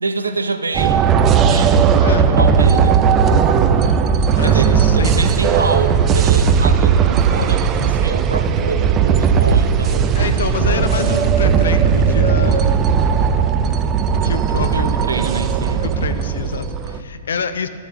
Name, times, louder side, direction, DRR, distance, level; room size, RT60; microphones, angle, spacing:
voice 1, 0.0-2.0 2.3-3.0 4.4-10.2 14.6-16.2, right 3 dB, 85° right, 8 dB, 0.5 m, -26 dB
sound 1, 0.7-17.0, right 6 dB, 30° right, 0.4 m, -16 dB
voice 2, 2.0-2.3 4.4-5.3 10.1-12.9 14.2-15.1 15.8-17.7, left 5 dB, 70° left, 11 dB, 0.5 m, -26 dB
13.0 x 6.9 x 3.0 m, 2.4 s
figure-of-eight pair, 110°, 0 cm